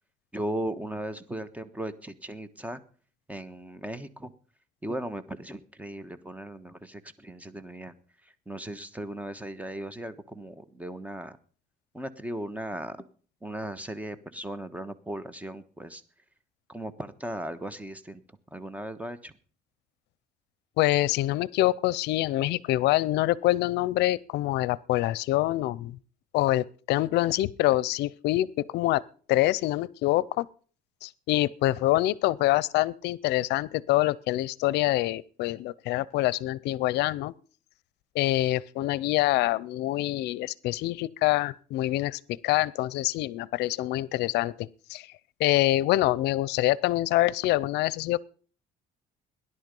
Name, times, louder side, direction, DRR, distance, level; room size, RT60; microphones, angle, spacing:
voice 1, 0.3-2.8 3.3-4.3 4.8-7.9 8.2-11.4 11.9-13.0 13.4-16.0 16.7-18.2 18.5-19.3, right 1 dB, 10° right, 1.2 m, -37 dB
voice 2, 20.8-25.9 26.3-28.5 28.7-29.0 29.3-30.5 31.0-37.3 38.1-45.1 45.4-48.2, left 16 dB, 85° left, 0.5 m, -25 dB
16.5 x 11.0 x 5.4 m
cardioid pair, 110°, 17 cm